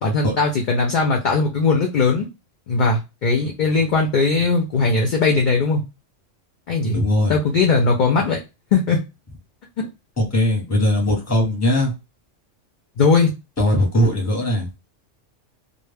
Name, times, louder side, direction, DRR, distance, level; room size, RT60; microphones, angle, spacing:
voice 1, 0.0-2.3 2.7-5.8 6.7-7.0 7.3-8.4 8.7-9.0 9.8-9.9 13.0-13.3, left 4 dB, 65° left, 1 dB, 0.5 m, -19 dB
voice 2, 6.9-7.4 10.2-11.9 13.6-14.7, left 1 dB, 15° left, 1 dB, 0.7 m, -19 dB
2.1 x 2.1 x 3.2 m, 0.26 s
omnidirectional pair, 1.3 m